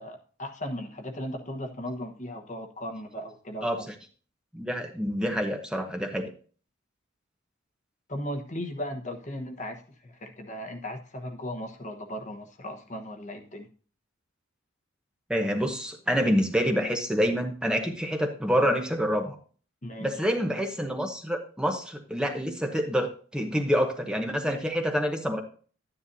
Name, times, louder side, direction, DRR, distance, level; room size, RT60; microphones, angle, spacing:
voice 1, 0.0-3.9 8.1-13.7 19.8-20.1, left 1 dB, 40° left, 5 dB, 1.1 m, -37 dB
voice 2, 3.6-3.9 4.5-6.3 15.3-19.4 20.0-25.4, equal, 5° right, 3 dB, 0.9 m, -27 dB
11.5 x 9.8 x 2.7 m, 0.41 s
head